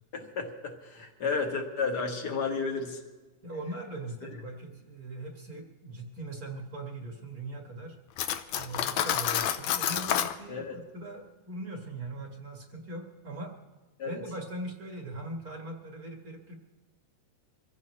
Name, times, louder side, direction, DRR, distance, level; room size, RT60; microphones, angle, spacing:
voice 1, 0.1-3.0 10.5-10.8 14.0-14.2, left 4 dB, 40° left, 2 dB, 1.9 m, -32 dB
voice 2, 3.4-8.0 8.5-10.6 10.9-13.5 14.0-16.5, right 2 dB, 35° right, 1 dB, 1.6 m, -40 dB
Cutlery silverware, 8.2-10.4, left 10 dB, 75° left, 1.8 m, -29 dB
25.0 x 16.0 x 3.2 m, 1.2 s
omnidirectional pair, 3.7 m